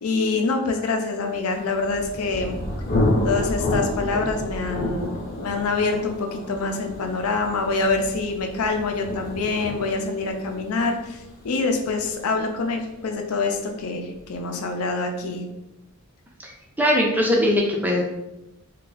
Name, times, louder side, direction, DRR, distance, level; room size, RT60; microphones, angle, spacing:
voice 1, 0.0-2.6 3.2-15.5, left 3 dB, 80° left, 4 dB, 0.5 m, -25 dB
Thunder, 1.6-13.1, left 1 dB, 45° left, 0.7 m, -29 dB
voice 2, 16.4-18.0, left 1 dB, 10° right, -1 dB, 0.4 m, -21 dB
2.4 x 2.3 x 3.8 m, 0.93 s
head